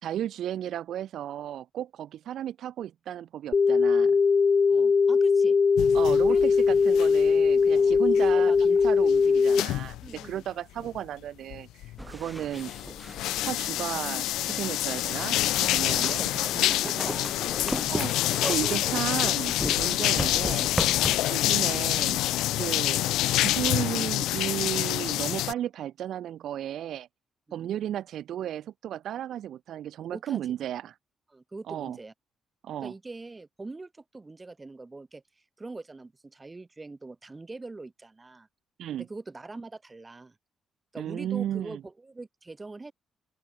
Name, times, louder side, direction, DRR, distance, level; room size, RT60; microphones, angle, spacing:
voice 1, 0.0-4.2 5.9-12.7 13.4-17.0 17.9-20.7 21.3-22.3 22.6-27.1 27.5-30.9 31.7-32.0 32.6-32.9 38.8-39.0 41.0-41.8, right 11 dB, 70° right, 2.8 m, -34 dB
sound 1, 3.5-9.6, left 5 dB, 35° left, 1.1 m, -20 dB
voice 2, 4.7-5.6 6.3-6.4 7.8-8.6 10.0-10.4 13.3-13.5 16.0-17.8 18.6-19.0 27.6-27.7 30.1-30.4 31.3-32.1 32.8-35.2 35.6-38.5 39.0-40.4 40.9-42.9, right 3 dB, 20° right, 7.2 m, -43 dB
sound 2, 5.8-7.5 7.8-10.3 10.8-11.0 11.5-12.1 12.5-25.5, left 15 dB, 90° left, 0.6 m, -27 dB
sound 3, 12.0-21.8, equal, ahead, 7.8 m, -37 dB
open air
cardioid pair, 90°, 0 cm